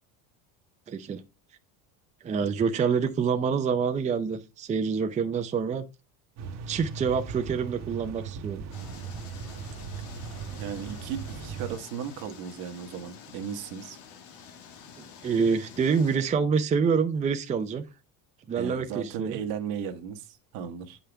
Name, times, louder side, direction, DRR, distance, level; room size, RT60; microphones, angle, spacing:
voice 1, 0.9-1.2 2.2-5.9 6.7-8.6 15.0-17.8 18.5-19.4, right 6 dB, 20° right, 0.6 m, -27 dB
sound 1, 6.4-11.8, right 6 dB, 45° right, 1.1 m, -38 dB
sound 2, 8.7-16.2, left 7 dB, 90° left, 1.9 m, -48 dB
voice 2, 10.6-14.0 18.5-21.0, right 8 dB, 70° right, 1.4 m, -36 dB
8.3 x 5.8 x 3.4 m
cardioid pair, 145°, 38 cm